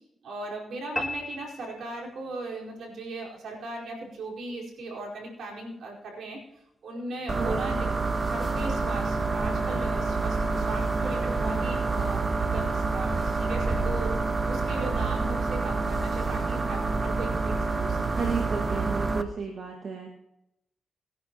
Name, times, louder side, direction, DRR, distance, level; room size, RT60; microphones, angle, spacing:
voice 1, 0.2-6.4 6.8-7.9 8.2-14.1 14.5-18.2, right 2 dB, 80° right, -2 dB, 4.8 m, -38 dB
sound 1, 1.0-2.5, left 1 dB, 5° left, 1.6 m, -35 dB
sound 2, 7.3-19.2, right 3 dB, 40° right, 1.2 m, -27 dB
voice 2, 7.3-7.7 18.2-20.1, right 4 dB, 65° right, 1 dB, 1.9 m, -33 dB
21.0 x 10.5 x 3.0 m, 0.84 s
cardioid pair, 60°, 0 cm